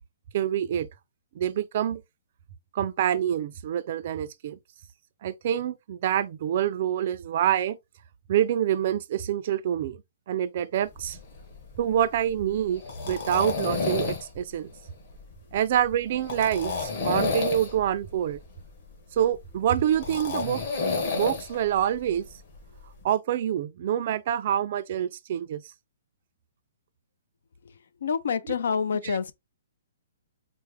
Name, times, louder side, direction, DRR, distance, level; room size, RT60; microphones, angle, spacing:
voice 1, 0.3-0.9 1.3-2.0 2.7-4.6 5.2-7.8 8.3-10.0 10.3-11.2 11.8-14.7 15.5-18.4 19.1-20.6 21.1-22.3 23.0-25.6 29.0-29.2, right 10 dB, 45° right, 0.4 m, -26 dB
sound 1, 10.9-23.0, left 4 dB, 40° left, 1.4 m, -32 dB
voice 2, 28.0-29.3, left 6 dB, 70° left, 0.5 m, -27 dB
4.4 x 2.1 x 3.3 m
hypercardioid pair, 165°, 0 cm